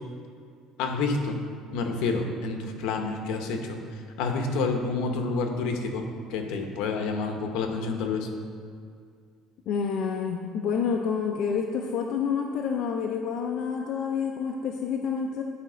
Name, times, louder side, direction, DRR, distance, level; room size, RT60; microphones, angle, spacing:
voice 1, 0.8-1.4 1.7-8.3, left 4 dB, 75° left, 4 dB, 1.0 m, -29 dB
voice 2, 9.7-15.4, left 6 dB, 55° left, 1 dB, 0.5 m, -28 dB
10.5 x 4.2 x 5.0 m, 2.2 s
cardioid pair, 145°, 0 cm